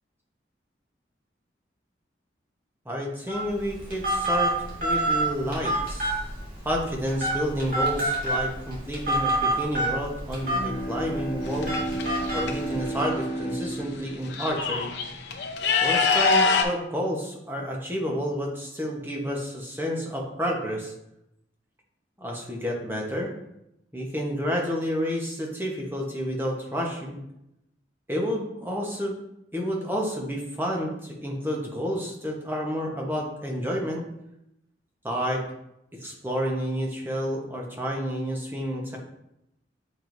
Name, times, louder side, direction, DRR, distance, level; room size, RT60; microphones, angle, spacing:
voice 1, 2.8-4.5 4.8-6.2 6.6-11.7 12.3-14.9 15.8-20.9 22.2-23.3 23.9-27.2 28.1-29.1 29.5-34.1 35.0-35.4 36.0-39.0, equal, 10° right, -1 dB, 1.0 m, -30 dB
Telephone, 3.3-13.1, right 1 dB, 50° right, 2.2 m, -28 dB
Bowed string instrument, 10.3-15.7, right 1 dB, 35° left, 1.5 m, -33 dB
sound 1, 11.4-12.5 13.7-13.8 14.1-16.6, left 4 dB, 75° left, 0.7 m, -24 dB
7.6 x 4.6 x 2.6 m, 0.83 s
head